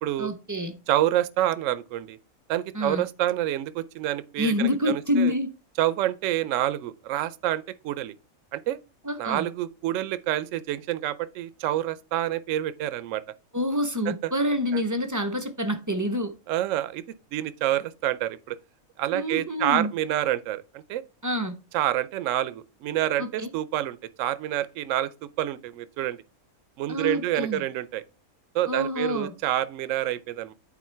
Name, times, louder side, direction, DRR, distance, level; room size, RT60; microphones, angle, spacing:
voice 1, 0.2-0.7 2.7-3.1 4.4-5.5 9.0-9.4 13.5-16.3 19.1-19.9 21.2-21.5 23.2-23.5 26.9-27.6 28.7-29.3, left 1 dB, 30° right, 0.3 m, -27 dB
voice 2, 0.9-2.2 2.5-5.3 5.8-8.1 8.5-8.8 9.2-13.2 14.2-14.3 14.7-14.8 16.5-17.0 17.3-18.6 19.0-21.0 21.7-25.1 25.4-26.2 26.8-28.0 28.5-30.5, right 13 dB, 70° right, 0.9 m, -27 dB
8.4 x 4.3 x 4.4 m
omnidirectional pair, 1.4 m